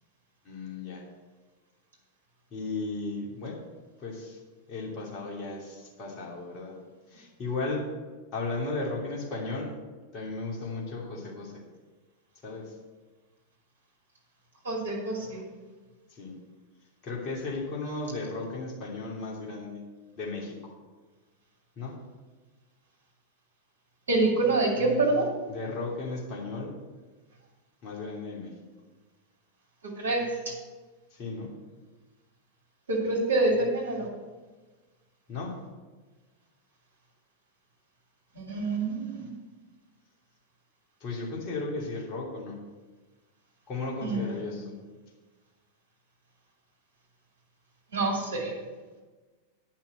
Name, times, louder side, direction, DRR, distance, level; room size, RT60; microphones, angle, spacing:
voice 1, 0.4-1.0 2.5-3.6 4.0-4.4 4.7-6.8 7.1-7.9 8.3-9.8 10.1-11.6 12.4-12.7 16.1-16.4 17.0-19.8 20.2-20.6 21.8-22.0 25.5-26.8 27.8-28.5 31.1-31.5 35.3-35.6 41.0-42.6 43.7-44.8, left 3 dB, 35° left, -2 dB, 2.8 m, -35 dB
voice 2, 14.6-15.4 24.1-25.3 30.0-30.2 32.9-34.1 38.4-39.3 44.0-44.4 47.9-48.5, right 2 dB, 70° right, 0 dB, 2.6 m, -26 dB
9.6 x 5.9 x 7.8 m, 1.3 s
figure-of-eight pair, 90°, 0 cm